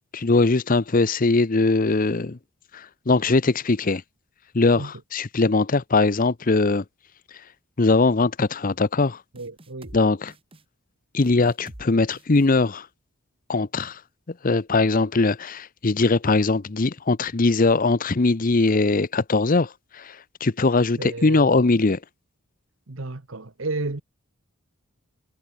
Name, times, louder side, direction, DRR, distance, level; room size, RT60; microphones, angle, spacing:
voice 1, 0.1-2.4 2.7-4.0 4.5-6.8 7.3-7.4 7.8-9.2 9.9-10.3 11.1-12.9 13.5-14.0 14.4-22.0, left 3 dB, 40° left, 0.7 m, -21 dB
voice 2, 9.3-9.9 21.0-21.7 22.9-24.0, right 2 dB, 65° right, 1.3 m, -32 dB
sound 1, 9.4-10.0 10.3-10.6 11.2-11.9 12.1-12.5, right 1 dB, 25° right, 1.7 m, -45 dB
head